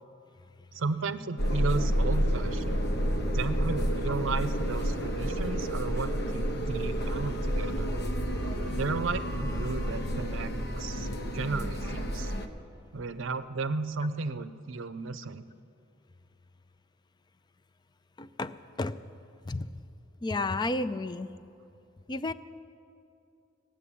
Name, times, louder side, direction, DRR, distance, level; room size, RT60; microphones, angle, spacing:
voice 1, 0.7-2.8 3.2-7.9 8.7-12.3 12.9-15.5, right 4 dB, 75° right, 12 dB, 0.6 m, -34 dB
sound 1, 1.4-12.5, equal, 55° left, 1.0 m, -30 dB
voice 2, 18.2-18.5 18.8-18.9 19.5-19.7 20.2-21.3 22.1-22.3, left 2 dB, 20° left, 13 dB, 0.4 m, -31 dB
15.5 x 7.6 x 10.0 m, 2.7 s
head